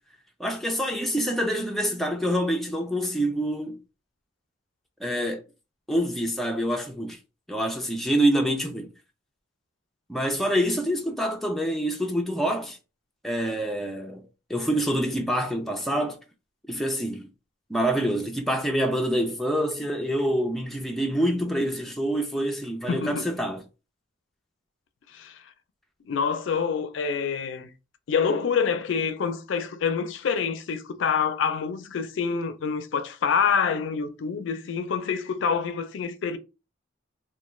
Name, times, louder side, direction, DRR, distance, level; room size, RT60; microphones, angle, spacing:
voice 1, 0.4-3.8 5.0-5.4 5.9-7.2 7.5-8.9 10.1-12.8 13.2-14.2 14.5-16.2 16.7-17.3 17.7-23.6, equal, ahead, 0.4 m, -26 dB
voice 2, 22.9-23.3 25.1-25.4 26.1-27.7 28.1-36.4, left 6 dB, 80° left, 0.4 m, -26 dB
2.3 x 2.2 x 3.0 m
head